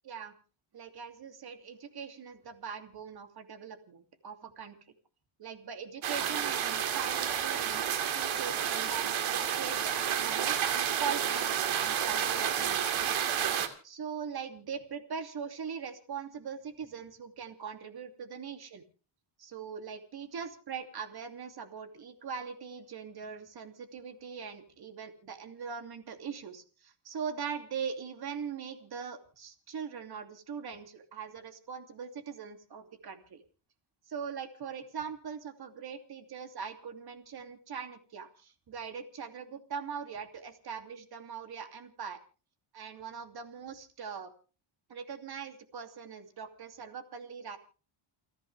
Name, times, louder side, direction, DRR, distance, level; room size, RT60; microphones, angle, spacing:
voice 1, 0.7-4.0 4.2-4.8 5.4-10.6 11.0-13.1 13.8-18.9 19.4-33.4 34.1-42.2 42.7-44.3 44.9-47.6, right 6 dB, 50° right, 7 dB, 2.9 m, -41 dB
sound 1, 6.0-13.7, right 9 dB, 70° right, 2.6 m, -30 dB
30.0 x 10.5 x 3.4 m, 0.37 s
cardioid pair, 115°, 50 cm